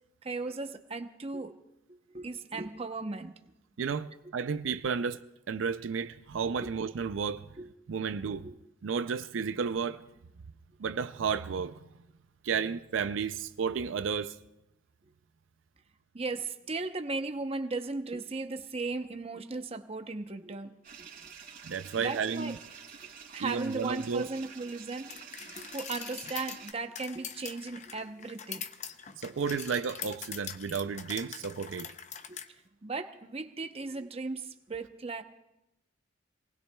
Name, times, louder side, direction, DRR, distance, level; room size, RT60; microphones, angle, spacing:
voice 1, 0.2-1.6 2.1-3.3 6.6-6.7 7.6-7.7 8.4-8.5 16.1-20.7 21.0-21.1 22.0-22.6 23.3-25.2 25.5-28.7 32.3-32.4 32.8-35.2, right 3 dB, 30° right, 0.7 m, -36 dB
voice 2, 3.8-5.2 5.5-7.5 7.9-8.5 8.8-10.0 10.8-11.8 12.4-14.4 21.6-22.6 23.4-24.3 29.2-31.9, right 6 dB, 80° right, 0.4 m, -32 dB
sound 1, 20.8-26.7, right 6 dB, 50° right, 3.2 m, -49 dB
sound 2, 25.1-32.5, left 8 dB, 35° left, 0.6 m, -43 dB
26.5 x 19.0 x 2.3 m
head